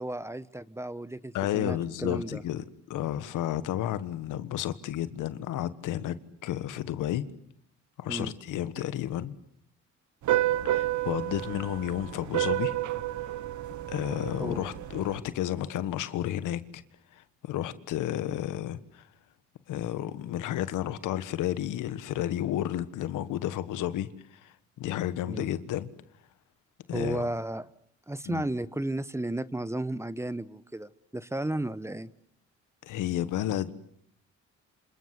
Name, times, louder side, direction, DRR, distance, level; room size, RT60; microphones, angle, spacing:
voice 1, 0.0-2.4 8.1-8.3 14.4-14.6 25.3-25.5 26.9-27.7 28.1-32.1, right 1 dB, 10° right, 1.1 m, -34 dB
voice 2, 1.3-6.1 6.4-7.2 8.0-9.3 10.7-12.7 13.9-16.8 17.2-19.0 19.7-24.1 24.4-25.9 26.9-27.3 28.3-28.5 32.8-33.7, left 12 dB, 85° left, 1.4 m, -32 dB
sound 1, 10.2-15.2, right 14 dB, 70° right, 1.2 m, -30 dB
27.5 x 27.0 x 8.1 m
cardioid pair, 90°, 30 cm